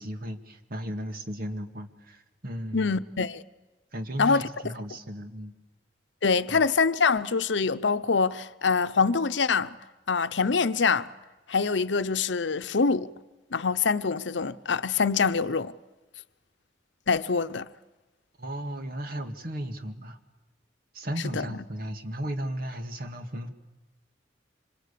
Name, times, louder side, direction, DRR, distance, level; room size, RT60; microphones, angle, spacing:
voice 1, 0.0-3.0 3.9-5.5 6.5-6.6 18.4-20.2 20.9-23.5, equal, 55° right, 2.1 m, -35 dB
voice 2, 2.7-3.4 4.2-4.4 6.2-9.8 10.1-11.1 11.5-13.1 13.5-15.7 17.1-17.7 21.3-21.6, left 5 dB, 80° left, 0.8 m, -25 dB
26.0 x 25.5 x 8.5 m
head